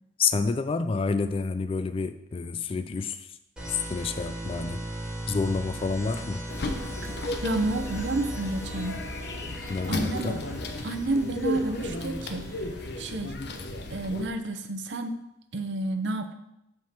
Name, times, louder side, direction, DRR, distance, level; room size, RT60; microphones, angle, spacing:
voice 1, 0.2-3.4 3.7-4.9 5.3-6.4 9.7-10.3, left 4 dB, 30° left, 10 dB, 0.3 m, -29 dB
sound 1, 3.6-13.2, right 1 dB, 5° right, 1.9 m, -39 dB
sound 2, 6.5-14.3, left 2 dB, 65° left, 0.7 m, -34 dB
voice 2, 7.4-9.0 9.9-10.4 10.8-12.5 13.0-13.3 13.9-15.2 15.5-16.3, right 2 dB, 75° right, 7 dB, 0.7 m, -30 dB
7.6 x 3.7 x 5.8 m, 0.84 s
head